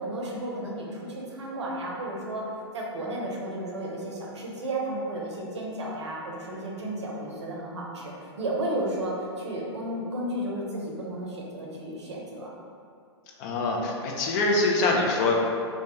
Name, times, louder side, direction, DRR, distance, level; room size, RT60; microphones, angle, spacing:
voice 1, 0.0-2.4 2.7-8.1 8.4-12.5, right 1 dB, 75° right, -3 dB, 0.6 m, -33 dB
voice 2, 13.4-15.3, left 3 dB, 40° left, -1 dB, 0.4 m, -24 dB
2.2 x 2.1 x 2.8 m, 2.4 s
figure-of-eight pair, 105°, 15 cm